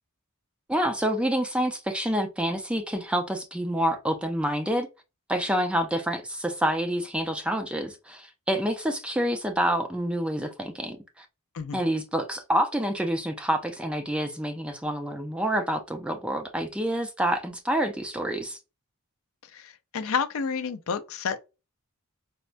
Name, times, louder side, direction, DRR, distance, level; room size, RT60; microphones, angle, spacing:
voice 1, 0.7-4.9 5.3-11.3 11.7-18.6, right 1 dB, 5° right, 0.3 m, -27 dB
voice 2, 19.5-21.4, left 6 dB, 65° left, 0.4 m, -30 dB
4.3 x 2.1 x 2.5 m
head